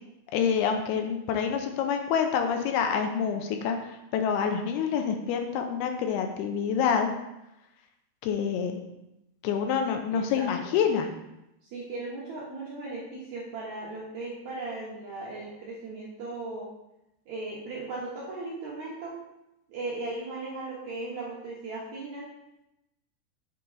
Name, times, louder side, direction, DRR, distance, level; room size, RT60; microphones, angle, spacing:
voice 1, 0.3-7.1 8.2-8.8 9.4-11.1, left 7 dB, 80° left, 5 dB, 2.4 m, -27 dB
voice 2, 10.1-10.7 11.6-16.7 17.3-19.2 19.7-22.3, right 2 dB, 70° right, -6 dB, 1.7 m, -37 dB
8.5 x 3.8 x 3.9 m, 0.89 s
omnidirectional pair, 4.8 m